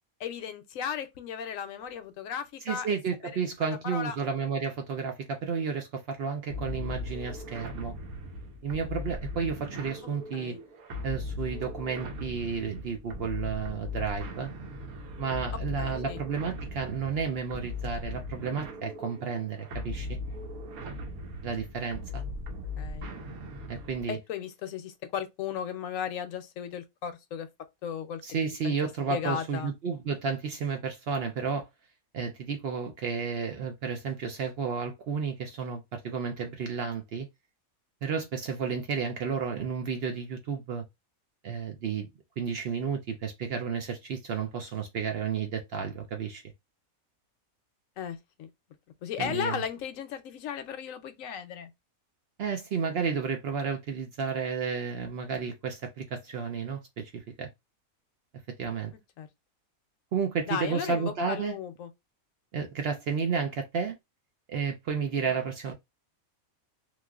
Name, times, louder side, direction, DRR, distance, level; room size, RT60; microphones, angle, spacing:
voice 1, 0.2-2.9 3.6-4.2 10.3-10.6 15.8-16.2 22.8-23.1 24.1-27.5 27.8-28.2 28.6-28.8 29.1-29.7 48.0-48.5 49.0-51.7 59.2-59.3 60.5-61.9 65.2-65.4, left 8 dB, 70° left, 0.9 m, -35 dB
voice 2, 2.6-7.9 8.6-10.6 11.0-14.5 15.2-20.2 21.4-22.2 23.7-24.2 28.2-31.7 32.1-37.3 38.0-40.8 41.4-42.1 42.4-46.4 49.2-49.6 52.4-57.5 58.6-58.9 60.1-61.6 62.5-64.0 64.5-65.7, right 6 dB, 65° right, 0.6 m, -32 dB
sound 1, 6.5-24.1, left 2 dB, 90° right, 1.2 m, -38 dB
3.0 x 2.4 x 2.3 m
omnidirectional pair, 1.5 m